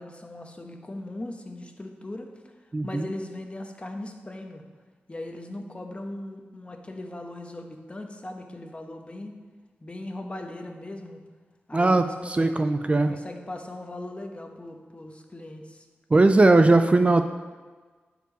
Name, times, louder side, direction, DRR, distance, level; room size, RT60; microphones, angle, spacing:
voice 1, 0.0-2.3 2.8-4.6 5.1-9.4 9.8-11.2 11.7-12.6 13.1-15.8, left 1 dB, 30° left, 3 dB, 1.1 m, -39 dB
voice 2, 2.7-3.1 11.7-13.2 16.1-17.3, right 2 dB, 30° right, 8 dB, 0.4 m, -19 dB
8.0 x 4.6 x 6.4 m, 1.4 s
cardioid pair, 65°, 4 cm